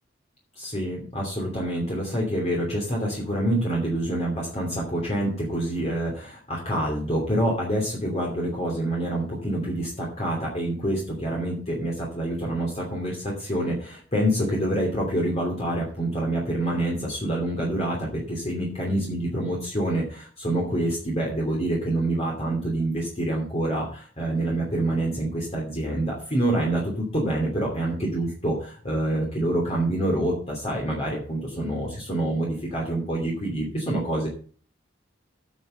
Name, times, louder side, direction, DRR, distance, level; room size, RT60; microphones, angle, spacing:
voice 1, 0.6-34.3, right 1 dB, 35° left, -2 dB, 2.9 m, -27 dB
9.3 x 6.7 x 6.6 m, 0.44 s
head